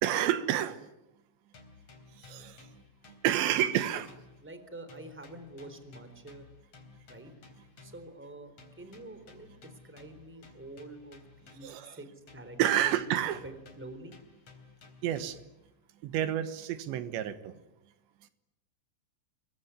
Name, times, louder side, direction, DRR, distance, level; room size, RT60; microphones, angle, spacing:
voice 1, 0.0-0.8 2.2-2.6 3.2-4.1 11.6-12.0 12.6-13.4 15.0-15.4 16.0-17.5, right 11 dB, 85° right, 12 dB, 3.5 m, -29 dB
sound 1, 1.5-4.6 4.9-8.2 8.6-11.9 12.3-15.6, left 4 dB, 35° left, 4.6 m, -55 dB
voice 2, 4.4-6.4 7.1-7.3 7.8-9.5 9.8-12.9 13.4-14.1, right 2 dB, 5° right, 9 dB, 3.2 m, -47 dB
26.0 x 23.0 x 9.8 m, 0.95 s
omnidirectional pair, 5.0 m